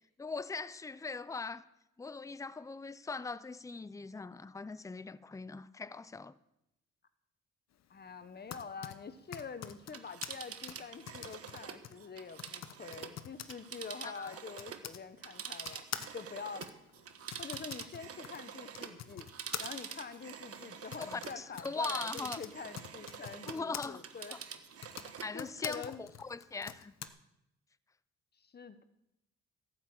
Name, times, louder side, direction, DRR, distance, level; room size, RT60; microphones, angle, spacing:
voice 1, 0.2-1.6 2.0-6.3 14.0-14.3 21.1-22.4 23.4-24.0 24.3-24.4 25.2-26.9, left 4 dB, 10° left, 0.5 m, -40 dB
voice 2, 7.9-15.8 16.1-16.7 17.4-19.3 19.6-24.4 25.3-26.0 28.3-28.8, left 5 dB, 35° left, 1.1 m, -46 dB
Typing, 8.2-15.0 15.6-23.9 24.7-27.1, left 9 dB, 60° left, 0.9 m, -47 dB
Telephone, 9.8-14.9 15.2-23.7 24.0-25.4 25.7-25.8, right 7 dB, 50° right, 1.3 m, -46 dB
12.5 x 7.4 x 8.1 m
cardioid pair, 90°, 30 cm